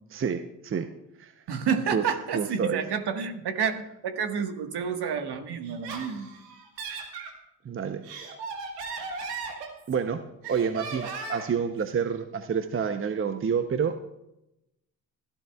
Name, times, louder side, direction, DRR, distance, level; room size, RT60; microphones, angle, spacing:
voice 1, 0.1-0.9 1.2-1.3 1.9-2.0 2.3-2.8 7.6-8.2 9.9-10.2 10.5-13.9, right 6 dB, 25° right, 9 dB, 0.8 m, -28 dB
voice 2, 1.5-6.3, right 6 dB, 55° right, 7 dB, 1.5 m, -29 dB
Laughter, 5.6-7.3 7.9-10.1 10.4-11.6, right 4 dB, 85° right, 1.6 m, -37 dB
18.0 x 13.0 x 2.4 m, 0.89 s
hypercardioid pair, 55°, 47 cm